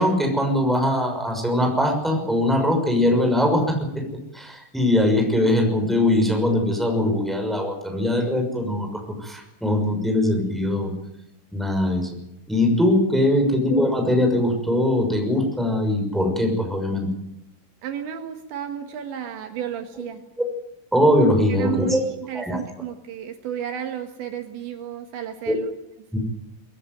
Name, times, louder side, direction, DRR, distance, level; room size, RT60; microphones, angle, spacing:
voice 1, 0.0-4.0 4.3-10.9 11.5-12.2 12.5-17.1 20.9-22.0 22.3-22.6 25.5-25.6 26.1-26.2, left 1 dB, ahead, 3 dB, 5.6 m, -21 dB
voice 2, 17.8-20.2 21.5-25.7, right 10 dB, 75° right, 5 dB, 3.8 m, -32 dB
22.5 x 16.5 x 9.4 m, 0.81 s
omnidirectional pair, 5.4 m